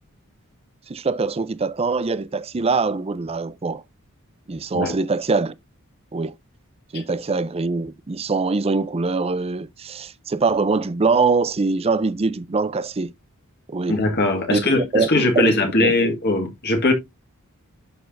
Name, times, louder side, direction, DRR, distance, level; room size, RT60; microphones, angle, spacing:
voice 1, 0.9-3.8 4.5-5.5 6.1-6.3 6.9-13.1 13.7-14.0 14.5-14.7 14.9-15.1 15.4-15.5 15.8-15.9, right 4 dB, 25° right, 0.5 m, -23 dB
voice 2, 13.9-16.9, left 2 dB, 50° left, 1.6 m, -20 dB
11.0 x 4.2 x 2.6 m
head